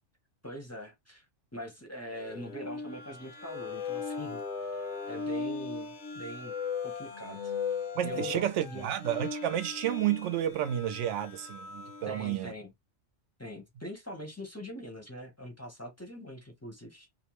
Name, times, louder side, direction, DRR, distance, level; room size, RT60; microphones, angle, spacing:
voice 1, 0.4-1.2 1.5-6.5 6.8-7.5 8.0-8.9 12.1-12.7 13.4-17.1, equal, 15° left, 0.6 m, -43 dB
sound 1, 2.1-12.3, left 5 dB, 80° left, 1.0 m, -38 dB
voice 2, 7.9-12.5, right 11 dB, 85° right, 0.9 m, -31 dB
2.7 x 2.0 x 2.9 m
omnidirectional pair, 1.2 m